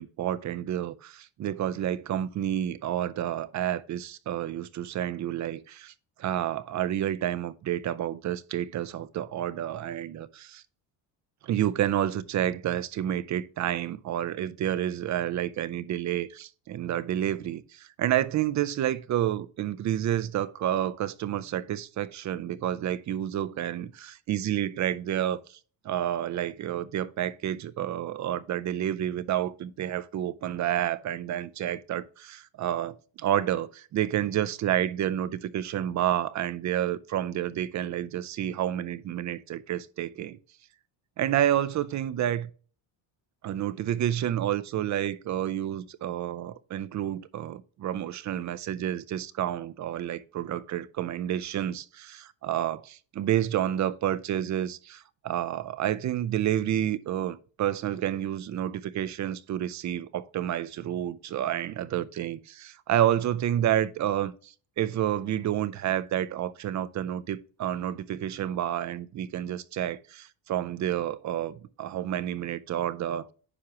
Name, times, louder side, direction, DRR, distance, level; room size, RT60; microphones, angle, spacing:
voice 1, 0.0-5.9 6.2-10.5 11.4-25.4 25.8-40.4 41.2-42.5 43.4-73.3, right 11 dB, 40° right, 0.4 m, -29 dB
9.8 x 5.8 x 2.9 m
cardioid pair, 155°, 47 cm